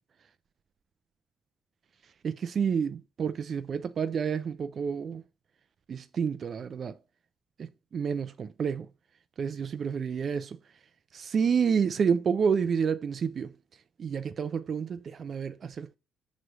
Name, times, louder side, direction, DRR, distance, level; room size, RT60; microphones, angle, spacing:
voice 1, 2.2-5.2 5.9-7.0 7.6-8.9 9.4-10.6 11.1-13.5 14.0-16.0, right 6 dB, 50° right, 0.4 m, -29 dB
6.1 x 3.1 x 5.2 m
cardioid pair, 90°, 0 cm